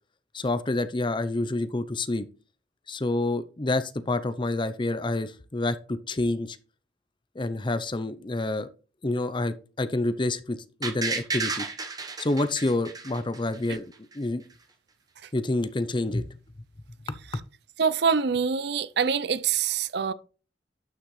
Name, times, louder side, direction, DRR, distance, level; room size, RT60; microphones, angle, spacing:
voice 1, 0.3-2.3 2.9-6.6 7.4-8.7 9.0-11.7 12.2-13.9 14.1-14.4 15.3-16.3 17.1-17.2, left 2 dB, 25° left, 0.6 m, -28 dB
sound 1, 10.8-13.7 14.1-14.2, right 4 dB, 20° right, 1.0 m, -32 dB
voice 2, 17.8-20.1, right 6 dB, 65° right, 0.5 m, -25 dB
11.5 x 6.4 x 3.2 m
head